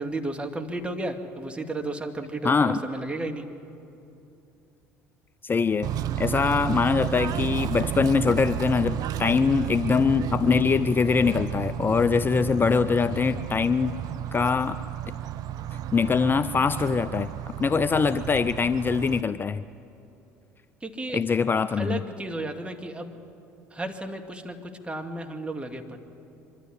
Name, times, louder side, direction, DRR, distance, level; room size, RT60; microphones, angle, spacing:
voice 1, 0.0-3.5 20.8-21.3 21.8-23.2 23.7-26.0, right 2 dB, 15° right, 4 dB, 2.1 m, -33 dB
voice 2, 2.4-2.8 5.4-5.9 6.2-14.0 14.3-14.8 15.9-17.3 17.6-19.6 21.1-22.0, left 5 dB, 25° left, 14 dB, 0.5 m, -23 dB
Bird / Train, 5.8-19.2, right 10 dB, 50° right, 0.7 m, -32 dB
24.5 x 13.0 x 9.9 m, 2.7 s
hypercardioid pair, 65°, 8 cm